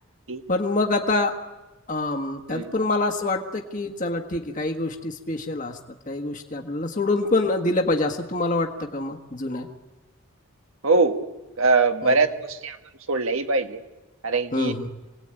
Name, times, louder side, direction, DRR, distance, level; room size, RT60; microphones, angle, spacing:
voice 1, 0.5-1.4 1.9-5.8 6.1-9.7 12.0-12.2 14.5-14.9, left 2 dB, 35° left, 2 dB, 1.5 m, -25 dB
voice 2, 10.8-11.2 11.6-12.8 13.1-13.8 14.2-14.7, right 3 dB, 70° right, 6 dB, 1.6 m, -22 dB
28.0 x 19.0 x 9.0 m, 1.2 s
head